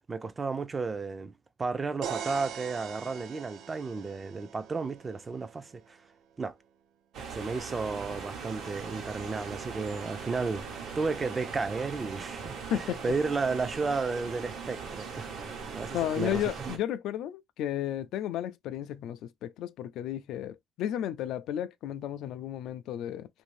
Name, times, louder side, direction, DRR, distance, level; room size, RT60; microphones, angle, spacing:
voice 1, 0.1-1.3 1.6-6.0 6.4-6.5 7.3-10.6 11.0-16.4, right 4 dB, 25° right, 0.4 m, -33 dB
sound 1, 2.0-5.9, right 8 dB, 85° right, 0.5 m, -41 dB
sound 2, 7.1-16.8, right 5 dB, 70° right, 0.9 m, -40 dB
voice 2, 12.7-13.0 15.9-23.3, left 11 dB, 90° left, 0.3 m, -33 dB
2.6 x 2.5 x 3.1 m
cardioid pair, 140°, 0 cm